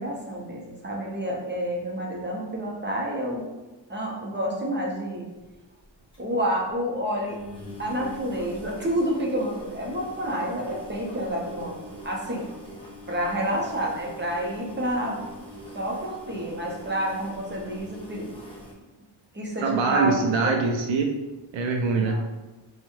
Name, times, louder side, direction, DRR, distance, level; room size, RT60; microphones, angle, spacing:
voice 1, 0.0-3.5 3.9-5.3 6.2-7.4 7.8-11.8 12.0-12.5 13.1-15.2 15.7-18.3 19.3-20.1 20.4-20.5 22.0-22.2, equal, 25° right, -2 dB, 0.9 m, -29 dB
sound 1, 5.4-5.5 5.8-5.9 6.1-6.2 6.5-6.7 7.2-18.7, left 1 dB, 10° left, 1.1 m, -43 dB
voice 2, 19.6-21.1 21.5-22.2, right 4 dB, 85° right, 3 dB, 0.5 m, -23 dB
4.0 x 2.3 x 3.1 m, 1.1 s
cardioid pair, 80°, 45 cm